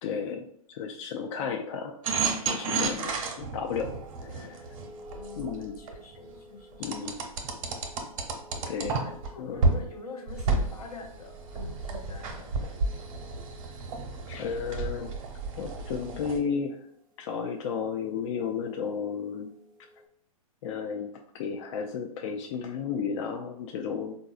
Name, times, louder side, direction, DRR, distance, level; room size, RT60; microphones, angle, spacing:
voice 1, 0.0-2.0 2.5-3.1 3.4-3.9 4.2-4.6 5.4-5.8 6.8-7.2 8.7-9.0 9.4-9.6 14.3-15.1 15.6-16.8 17.2-19.5 20.6-24.2, left 6 dB, 55° left, 2 dB, 0.4 m, -33 dB
sound 1, 2.0-5.9 6.8-9.3 9.6-9.8 10.3-16.4, right 3 dB, 60° right, 0.9 m, -31 dB
voice 2, 2.6-3.2 5.1-7.1 9.0-13.0, left 2 dB, 85° left, 1 dB, 0.9 m, -46 dB
Singing-bowl Esque, 3.7-20.1, left 1 dB, 25° right, 0.4 m, -54 dB
3.8 x 2.6 x 2.4 m, 0.66 s
hypercardioid pair, 125°, 19 cm